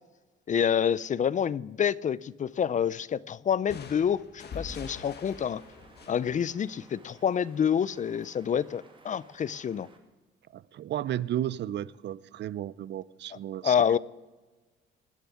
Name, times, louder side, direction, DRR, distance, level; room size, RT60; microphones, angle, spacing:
voice 1, 0.5-5.6 6.1-9.9 13.3-14.0, left 8 dB, 40° left, 0.4 m, -28 dB
sound 1, 3.7-7.4, left 5 dB, 55° left, 1.7 m, -45 dB
sound 2, 4.4-10.0, right 3 dB, 25° right, 2.3 m, -57 dB
voice 2, 10.5-13.7, right 12 dB, 60° right, 0.5 m, -33 dB
19.5 x 6.9 x 9.8 m
cardioid pair, 90°, 20 cm